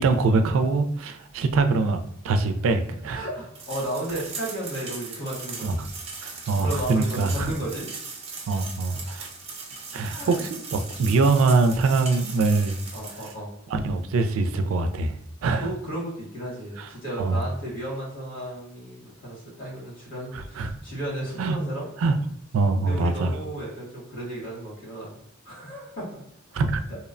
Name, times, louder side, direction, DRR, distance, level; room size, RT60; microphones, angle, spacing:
voice 1, 0.0-3.3 5.6-5.9 6.2-7.5 8.5-9.3 9.9-12.8 13.7-15.7 16.8-16.9 17.2-17.4 20.3-20.7 21.4-21.6 22.0-22.2 22.5-23.3 26.5-26.8, right 3 dB, 80° right, 8 dB, 0.3 m, -23 dB
voice 2, 3.1-5.7 6.2-7.9 8.3-8.4 8.9-9.0 9.9-10.5 12.9-13.5 15.4-21.9 22.8-25.2 25.4-26.2 26.9-27.0, right 1 dB, 65° left, -5 dB, 1.3 m, -34 dB
sound 1, 3.5-13.3, right 4 dB, 30° right, 0.6 m, -38 dB
2.8 x 2.0 x 2.4 m, 0.74 s
head